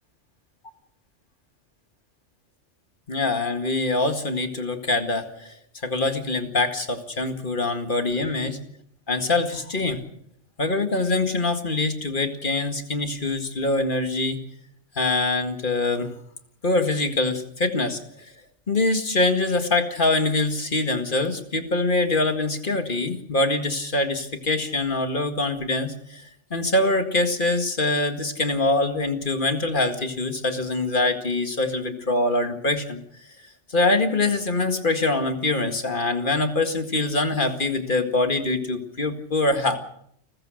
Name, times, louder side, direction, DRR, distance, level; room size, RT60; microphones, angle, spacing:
voice 1, 3.1-5.6 5.8-8.6 9.1-10.0 10.6-14.4 15.0-16.1 16.6-18.0 18.7-33.0 33.7-39.8, left 2 dB, 45° left, 6 dB, 2.2 m, -24 dB
29.5 x 15.0 x 6.5 m, 0.69 s
omnidirectional pair, 1.2 m